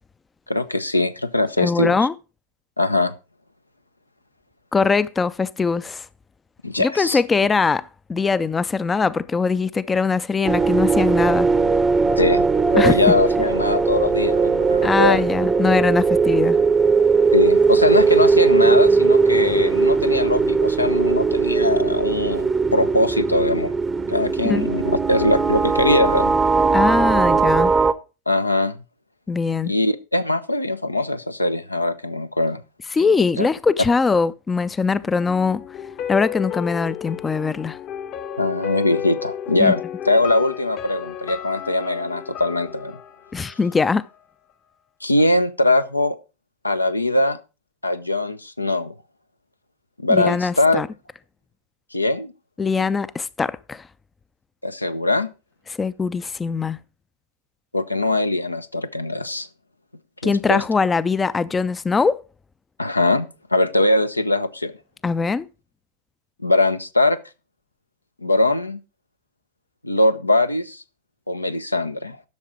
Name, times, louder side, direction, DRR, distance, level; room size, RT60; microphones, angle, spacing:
voice 1, 0.5-2.1 2.8-3.1 6.6-7.2 12.2-12.4 12.7-15.2 17.3-23.7 24.1-26.3 28.3-28.8 29.6-32.6 33.4-33.5 38.4-39.8 40.1-43.0 45.0-46.2 46.6-47.4 47.8-48.9 50.0-50.8 51.9-52.3 54.6-55.3 57.7-59.5 60.2-60.6 62.8-64.7 66.4-67.2 68.2-68.8 69.8-70.8 71.3-72.2, left 2 dB, 85° left, 0.6 m, -21 dB
voice 2, 1.6-2.1 4.7-6.1 6.8-11.5 12.8-13.0 14.8-16.6 24.4-24.7 26.7-27.7 29.3-29.7 32.9-35.6 36.1-37.8 39.6-39.7 43.3-44.1 50.1-50.9 52.6-53.9 55.8-56.8 60.2-62.2 65.0-65.5, left 4 dB, 15° left, 0.4 m, -21 dB
sound 1, 10.4-27.9, right 4 dB, 15° right, 0.7 m, -19 dB
sound 2, 35.2-44.2 44.5-44.6, left 9 dB, 35° left, 0.8 m, -33 dB
11.5 x 6.5 x 4.8 m
figure-of-eight pair, 90°, 0 cm